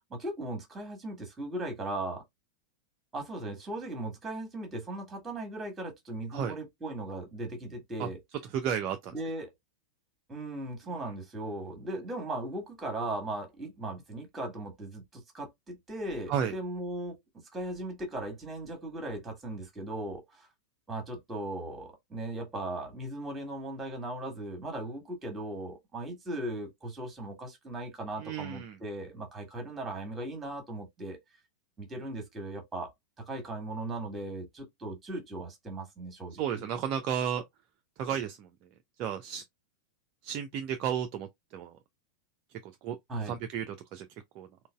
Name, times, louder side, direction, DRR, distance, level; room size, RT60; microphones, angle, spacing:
voice 1, 0.1-2.2 3.1-8.2 9.1-9.5 10.3-17.2 17.5-20.5 20.9-31.2 31.8-32.9 33.2-36.6 43.1-43.4, right 1 dB, 15° right, 1.4 m, -38 dB
voice 2, 8.5-9.1 16.3-16.5 28.2-28.8 36.4-37.4 38.0-38.5 39.0-39.4 40.2-41.3 41.5-41.8 42.8-43.0 43.3-44.1 44.4-44.5, right 8 dB, 40° right, 0.4 m, -32 dB
3.8 x 2.2 x 2.2 m
figure-of-eight pair, 90°, 0 cm